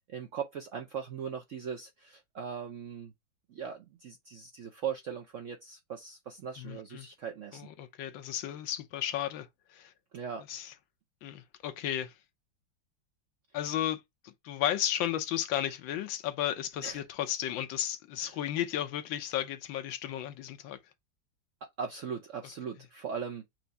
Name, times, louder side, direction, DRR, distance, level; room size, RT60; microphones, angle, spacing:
voice 1, 0.1-3.1 3.5-7.7 10.1-10.4 16.8-17.0 18.2-18.3 21.6-23.4, right 7 dB, 70° right, 0.7 m, -39 dB
voice 2, 6.6-7.1 7.5-9.9 10.5-10.7 11.2-12.1 13.5-20.8, left 11 dB, 85° left, 1.5 m, -34 dB
4.7 x 2.6 x 4.0 m
omnidirectional pair, 2.1 m